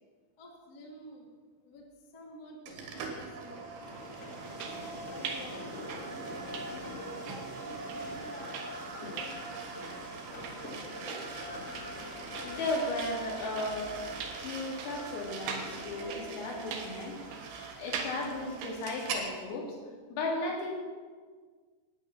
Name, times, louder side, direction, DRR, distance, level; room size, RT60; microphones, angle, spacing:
voice 1, 0.4-1.3 1.6-3.7 4.6-6.4 6.8-9.4 10.2-11.3, equal, 45° left, -1 dB, 1.3 m, -50 dB
sound 1, 2.7-19.3, right 3 dB, 85° right, 4.6 m, -42 dB
sound 2, 3.8-12.7, left 2 dB, 60° left, 0.9 m, -46 dB
sound 3, 4.3-19.2, right 5 dB, 65° right, 2.8 m, -44 dB
voice 2, 12.3-14.0 14.4-17.2 17.8-19.8 20.1-20.7, left 2 dB, 90° left, -1 dB, 5.1 m, -35 dB
13.0 x 9.7 x 7.1 m, 1.5 s
omnidirectional pair, 5.8 m